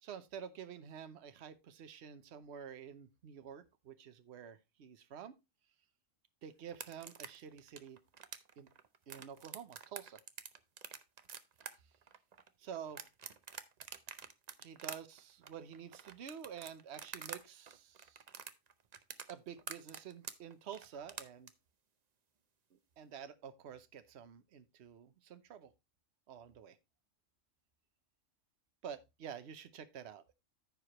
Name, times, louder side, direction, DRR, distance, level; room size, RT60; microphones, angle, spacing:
voice 1, 0.0-5.4 6.4-8.0 8.6-8.7 9.1-10.2 12.6-13.0 14.6-18.2 19.3-21.5 22.7-25.7 26.3-26.8 28.8-30.3, right 8 dB, 60° right, 1.1 m, -49 dB
sound 1, 6.7-17.4 17.7-21.5, right 6 dB, 45° right, 0.6 m, -48 dB
14.0 x 4.8 x 2.9 m
omnidirectional pair, 1.3 m